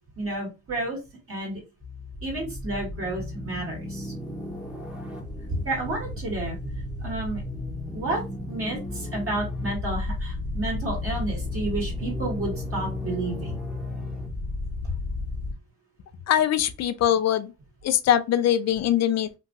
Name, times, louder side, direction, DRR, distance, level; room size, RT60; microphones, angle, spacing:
voice 1, 0.2-1.0 1.3-1.6 2.2-4.1 5.5-6.6 7.0-7.4 7.9-8.2 8.5-13.6 14.8-15.0, right 2 dB, 50° right, 1.7 m, -31 dB
sound 1, 1.8-15.5, left 2 dB, 5° right, 0.9 m, -33 dB
voice 2, 16.3-17.5 17.8-19.4, left 10 dB, 60° left, 0.5 m, -22 dB
3.0 x 2.5 x 2.5 m
cardioid pair, 90°, 30 cm